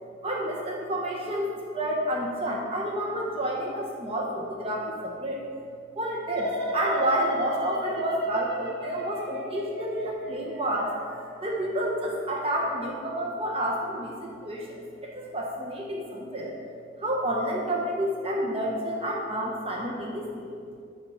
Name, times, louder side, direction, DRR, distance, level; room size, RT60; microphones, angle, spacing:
voice 1, 0.2-5.4 6.0-10.9 11.4-16.5 17.0-20.5, right 1 dB, 30° right, -1 dB, 1.0 m, -29 dB
sound 1, 6.4-13.3 13.7-14.1, right 1 dB, 65° right, 1.4 m, -36 dB
12.5 x 4.4 x 5.7 m, 2.3 s
head